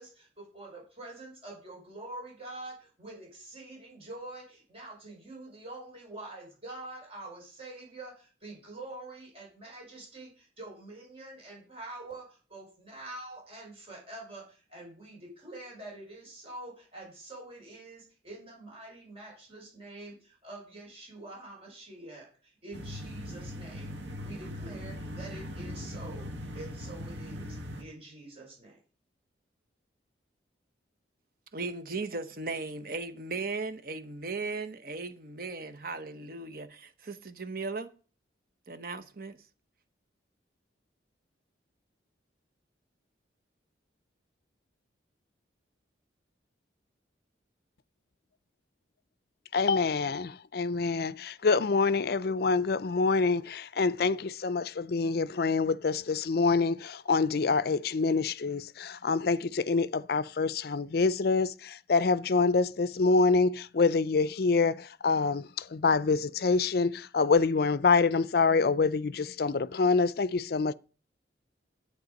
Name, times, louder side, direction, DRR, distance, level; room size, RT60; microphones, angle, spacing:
voice 1, 0.0-24.0 24.2-28.8, right 2 dB, 30° right, 5.8 m, -46 dB
sound 1, 22.7-27.8, equal, 80° right, 1.7 m, -40 dB
voice 2, 31.5-37.9 38.7-39.4, right 3 dB, 50° right, 1.0 m, -37 dB
voice 3, 49.5-70.7, left 4 dB, 55° left, 0.4 m, -26 dB
11.0 x 8.9 x 5.2 m
head